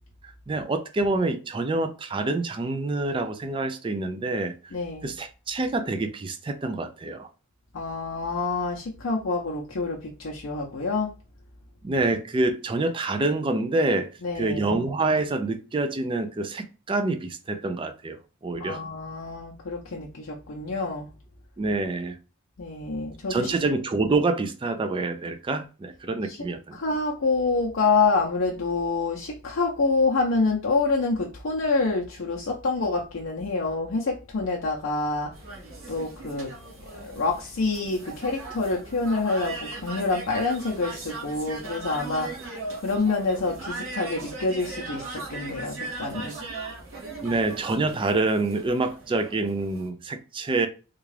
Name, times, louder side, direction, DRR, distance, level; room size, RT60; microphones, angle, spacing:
voice 1, 0.2-4.5 5.0-7.3 11.8-14.1 14.3-18.8 21.6-22.2 23.3-26.8 47.2-50.7, right 2 dB, 25° right, 0.3 m, -27 dB
voice 2, 4.7-5.1 7.7-11.1 14.2-14.6 18.6-21.1 22.6-23.5 26.2-26.5 26.7-35.3 35.9-36.5 36.9-42.4 42.8-46.3, left 3 dB, 65° left, 0.6 m, -27 dB
sound 1, 35.3-49.9, right 3 dB, 85° right, 1.6 m, -39 dB
3.6 x 2.3 x 3.2 m
head